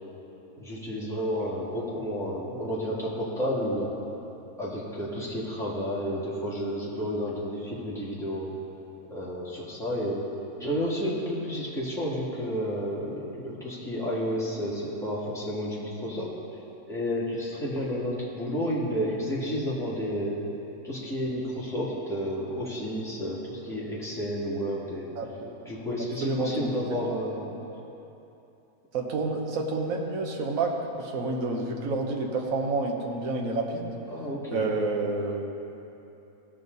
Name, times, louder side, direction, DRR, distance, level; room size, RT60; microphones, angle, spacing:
voice 1, 0.6-3.9 4.6-8.5 9.1-10.2 10.6-16.3 16.9-20.4 20.8-25.1 25.7-27.5 34.1-34.6, equal, ahead, -8 dB, 2.2 m, -31 dB
voice 2, 25.1-25.5 25.9-27.2 28.9-33.9 34.5-35.4, right 3 dB, 60° right, 0 dB, 1.5 m, -29 dB
17.0 x 6.5 x 4.0 m, 2.9 s
omnidirectional pair, 1.7 m